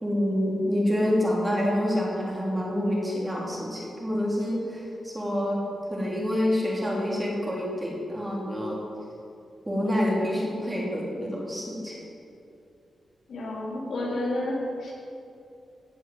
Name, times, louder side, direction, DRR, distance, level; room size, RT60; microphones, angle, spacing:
voice 1, 0.0-5.6 5.9-8.8 9.6-12.0, left 1 dB, 10° right, -4 dB, 3.2 m, -27 dB
voice 2, 13.3-14.9, left 1 dB, 70° left, -4 dB, 4.1 m, -30 dB
16.0 x 9.2 x 7.9 m, 2.6 s
wide cardioid pair, 170°, 0 cm